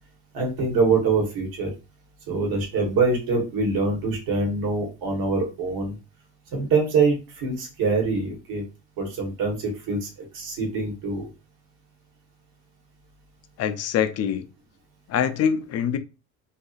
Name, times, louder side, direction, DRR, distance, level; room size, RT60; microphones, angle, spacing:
voice 1, 0.3-1.7 2.3-5.9 6.5-8.6 9.0-10.1 10.3-11.3, right 4 dB, 65° right, 1.3 m, -24 dB
voice 2, 13.6-14.4 15.1-16.0, left 8 dB, 45° left, 0.4 m, -24 dB
2.6 x 2.3 x 2.4 m
supercardioid pair, 80°, 38 cm